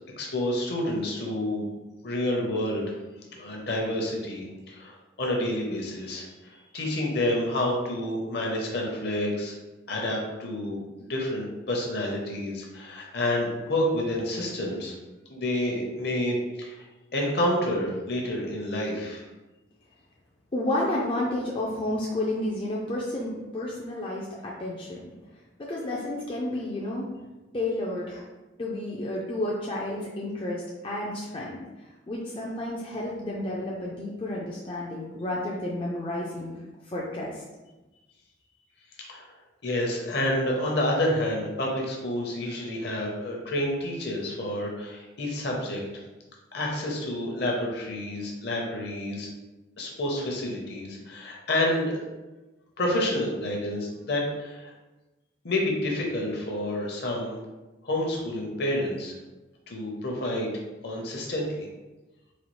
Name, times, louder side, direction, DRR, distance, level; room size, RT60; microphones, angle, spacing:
voice 1, 0.2-1.7 2.0-3.0 3.3-9.5 9.9-14.9 15.3-16.8 17.1-19.2 39.1-39.3 39.6-45.8 46.5-49.3 49.8-52.0 52.8-54.7 55.4-57.4 57.8-59.1 59.7-60.5 60.8-61.7, left 1 dB, 55° left, -1 dB, 0.7 m, -29 dB
voice 2, 20.5-25.1 25.6-27.1 27.5-28.2 28.6-31.6 32.1-36.6 36.9-37.3, left 1 dB, 30° left, -4 dB, 0.4 m, -31 dB
4.1 x 2.3 x 3.0 m, 1.1 s
head